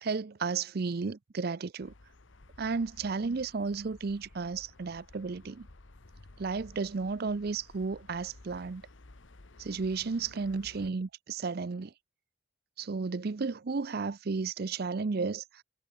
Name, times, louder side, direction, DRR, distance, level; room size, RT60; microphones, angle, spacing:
voice 1, 0.0-1.9 2.6-5.7 6.4-8.8 9.6-11.9 12.8-15.6, right 4 dB, 50° right, 0.5 m, -33 dB
sound 1, 1.8-10.9, left 2 dB, 75° left, 1.4 m, -55 dB
head